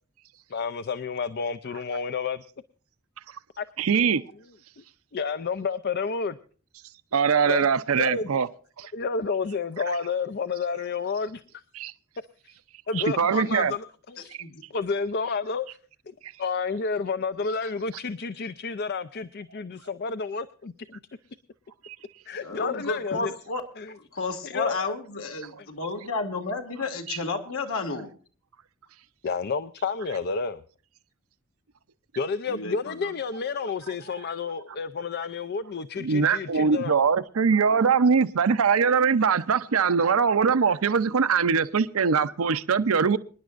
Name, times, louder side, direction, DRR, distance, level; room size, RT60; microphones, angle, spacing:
voice 1, 0.5-2.4 3.6-3.7 4.8-4.9 5.1-6.4 7.5-7.6 8.0-8.4 8.9-11.4 12.9-14.4 14.7-15.7 16.1-16.2 16.4-21.0 22.3-23.3 23.8-23.9 24.4-24.9 29.2-30.6 32.2-36.9, left 5 dB, 50° left, 0.5 m, -30 dB
voice 2, 3.8-4.2 7.1-8.5 8.8-8.9 11.7-11.9 12.9-13.7 16.2-16.3 21.8-22.0 25.5-25.6 27.1-27.2 33.9-34.0 36.0-43.2, right 6 dB, 85° right, 0.6 m, -22 dB
voice 3, 22.4-23.6 24.0-28.1 32.5-33.1, left 3 dB, 80° left, 2.2 m, -32 dB
26.0 x 10.5 x 2.5 m
head